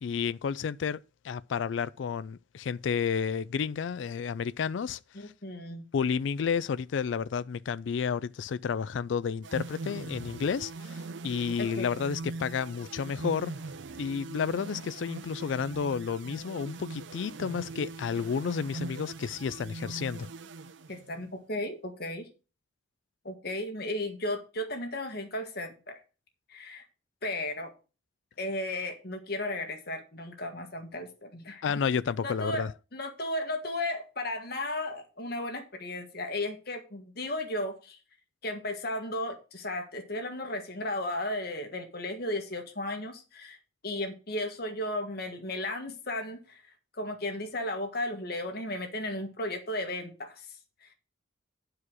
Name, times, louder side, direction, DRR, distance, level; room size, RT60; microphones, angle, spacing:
voice 1, 0.0-1.0 1.2-5.3 5.9-13.5 14.0-20.3 31.6-32.7, left 6 dB, 75° left, 0.4 m, -31 dB
voice 2, 5.1-5.8 11.6-12.0 20.9-22.3 23.2-26.0 26.5-26.8 27.2-27.7 28.4-31.6 32.2-38.0 38.4-43.6 43.8-46.6 46.9-50.5 50.8-50.9, left 1 dB, 55° left, 1.7 m, -35 dB
sound 1, 9.4-21.3, right 3 dB, 70° right, 0.5 m, -41 dB
9.8 x 4.8 x 6.1 m
head